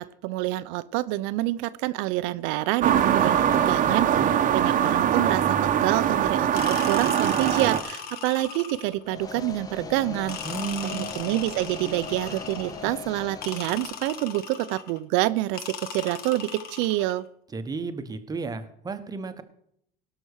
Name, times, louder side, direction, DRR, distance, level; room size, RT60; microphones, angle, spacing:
voice 1, 0.0-10.4 10.8-17.3, right 17 dB, 75° right, 16 dB, 0.7 m, -27 dB
sound 1, 2.8-7.8, right 9 dB, 40° right, 1.0 m, -22 dB
sound 2, 6.6-9.1 10.3-12.9 13.4-15.0 15.6-17.2, left 7 dB, 50° left, 1.4 m, -38 dB
sound 3, 9.0-14.2, left 5 dB, 20° left, 1.0 m, -39 dB
voice 2, 10.4-11.1 17.5-19.4, right 4 dB, 20° right, 9 dB, 1.1 m, -33 dB
17.5 x 6.1 x 6.5 m, 0.71 s
cardioid pair, 135°, 21 cm